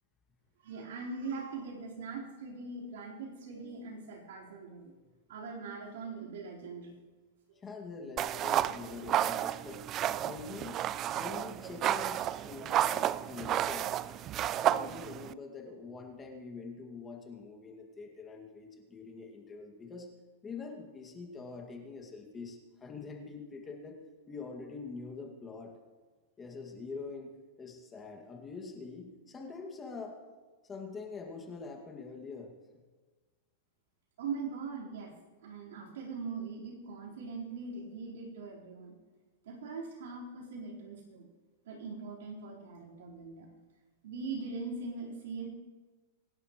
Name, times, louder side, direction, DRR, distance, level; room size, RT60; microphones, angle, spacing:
voice 1, 0.6-4.9 5.3-6.9 34.2-35.1 35.4-39.0 39.5-41.3 41.7-43.5 44.0-45.5, right 4 dB, 75° right, -4 dB, 4.2 m, -41 dB
voice 2, 7.6-9.8 10.2-10.8 11.1-13.0 13.3-13.9 14.5-20.1 20.4-25.8 26.4-30.2 30.6-32.6, left 4 dB, 15° left, 2 dB, 2.1 m, -44 dB
sound 1, 8.2-15.3, right 11 dB, 30° right, 0.4 m, -32 dB
25.5 x 11.0 x 3.1 m, 1.3 s
hypercardioid pair, 135°, 0 cm